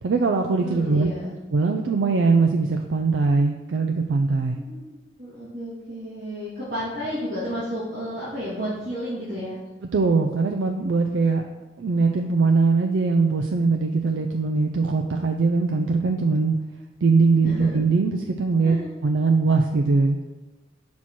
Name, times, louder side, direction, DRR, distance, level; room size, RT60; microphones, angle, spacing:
voice 1, 0.0-1.1 1.5-4.6 9.9-11.4 11.8-16.6 17.0-20.2, right 4 dB, 85° right, 3 dB, 0.4 m, -21 dB
voice 2, 0.6-1.3 4.5-4.8 5.2-9.6 17.4-17.7 18.6-18.9, equal, 45° right, -12 dB, 2.1 m, -32 dB
6.1 x 4.2 x 4.5 m, 1.1 s
head